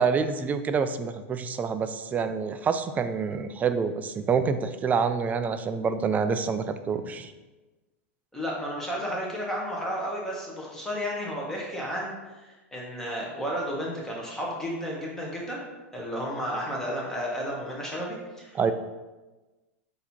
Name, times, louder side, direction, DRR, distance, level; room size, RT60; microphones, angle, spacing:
voice 1, 0.0-7.3 18.5-18.7, right 5 dB, 20° right, 9 dB, 0.3 m, -27 dB
voice 2, 8.3-15.6 15.9-18.6, equal, 5° left, -4 dB, 1.3 m, -32 dB
4.0 x 2.8 x 4.3 m, 1.2 s
hypercardioid pair, 110°, 7 cm